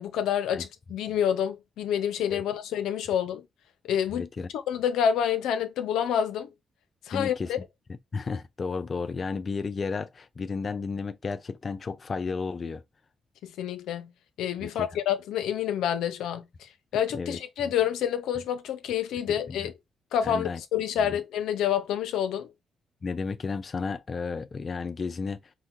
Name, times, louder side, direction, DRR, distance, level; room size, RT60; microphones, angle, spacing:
voice 1, 0.0-3.4 3.8-4.3 4.5-6.5 7.1-7.6 13.4-14.1 14.4-19.7 20.1-22.5, left 9 dB, 90° left, 0.5 m, -28 dB
voice 2, 4.1-4.5 7.1-7.5 8.1-12.8 14.6-14.9 17.1-17.4 19.5-19.7 20.2-20.6 21.1-21.2 23.0-25.4, left 4 dB, 45° left, 0.4 m, -33 dB
4.7 x 2.1 x 2.8 m
cardioid pair, 70°, 0 cm